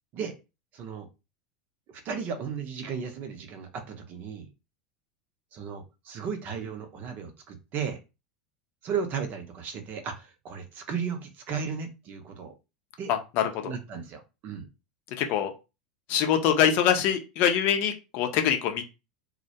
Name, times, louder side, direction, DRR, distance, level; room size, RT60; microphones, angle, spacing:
voice 1, 0.7-1.1 2.0-4.5 5.5-8.0 8.8-12.5 13.0-13.1 13.6-14.7, right 6 dB, 45° right, 7 dB, 0.6 m, -35 dB
voice 2, 13.1-13.7 15.2-15.5 16.1-18.8, left 9 dB, 50° left, 5 dB, 0.6 m, -24 dB
2.1 x 2.1 x 2.8 m, 0.28 s
figure-of-eight pair, 85°, 4 cm